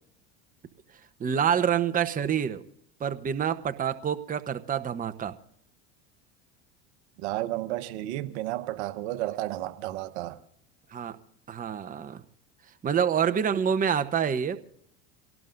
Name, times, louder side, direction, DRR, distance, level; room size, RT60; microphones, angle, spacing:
voice 1, 1.2-2.6 3.0-5.3 10.9-11.2 11.5-12.2 12.8-14.6, right 8 dB, 25° right, 0.9 m, -27 dB
voice 2, 7.2-10.4, right 15 dB, 75° right, 1.1 m, -32 dB
26.5 x 18.0 x 2.6 m
supercardioid pair, 95°, 34 cm